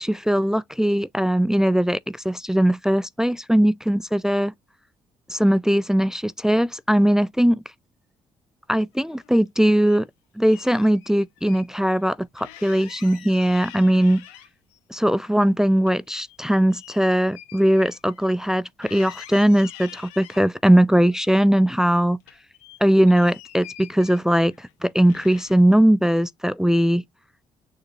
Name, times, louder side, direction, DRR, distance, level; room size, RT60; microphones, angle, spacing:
voice 1, 0.0-2.0 2.2-4.5 5.3-7.6 8.7-10.1 10.4-14.2 14.9-22.2 22.8-27.0, equal, 5° right, 0.3 m, -20 dB
sound 1, 8.9-10.0 10.4-11.7 12.0-12.1 12.4-14.8 15.1-18.6 18.8-20.5 21.1-21.9 22.2-24.7 25.1-25.8, left 13 dB, 85° left, 0.6 m, -46 dB
6.7 x 2.7 x 2.5 m
hypercardioid pair, 50°, 15 cm